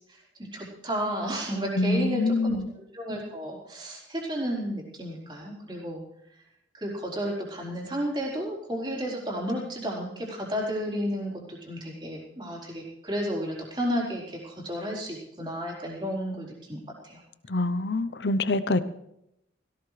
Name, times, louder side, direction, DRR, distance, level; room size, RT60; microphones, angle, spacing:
voice 1, 0.1-2.6 2.9-6.0 6.7-16.8 17.0-17.2, equal, 25° right, -4 dB, 4.2 m, -32 dB
voice 2, 1.8-2.7 17.5-18.8, left 2 dB, 70° left, 13 dB, 0.8 m, -25 dB
17.5 x 17.0 x 3.3 m, 0.80 s
head